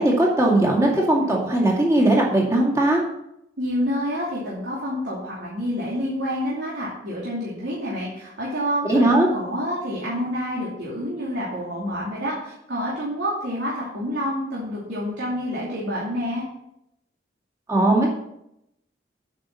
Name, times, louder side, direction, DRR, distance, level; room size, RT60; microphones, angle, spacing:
voice 1, 0.0-3.0 8.9-9.3 17.7-18.1, right 1 dB, 15° right, -2 dB, 2.2 m, -19 dB
voice 2, 3.6-16.4, equal, 75° right, -6 dB, 2.7 m, -28 dB
8.7 x 6.0 x 6.9 m, 0.80 s
head